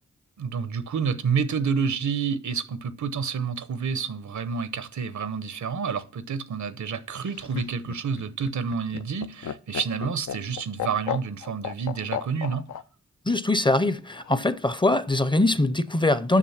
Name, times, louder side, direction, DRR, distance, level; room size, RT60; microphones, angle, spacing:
voice 1, 0.4-12.7, right 6 dB, 80° right, 0.8 m, -29 dB
Laughter, 7.1-12.8 14.1-14.8, left 9 dB, 85° left, 0.5 m, -34 dB
voice 2, 13.3-16.4, left 2 dB, 15° left, 0.5 m, -22 dB
7.4 x 6.2 x 5.7 m
cardioid pair, 65°, 29 cm